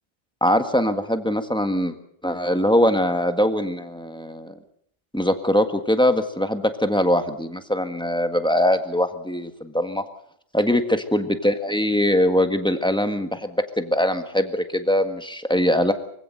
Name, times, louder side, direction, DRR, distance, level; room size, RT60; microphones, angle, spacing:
voice 1, 0.4-1.9 2.2-4.6 5.1-10.0 10.5-15.9, left 1 dB, 5° left, 7 dB, 1.6 m, -22 dB
24.0 x 16.0 x 7.9 m, 0.69 s
omnidirectional pair, 1.0 m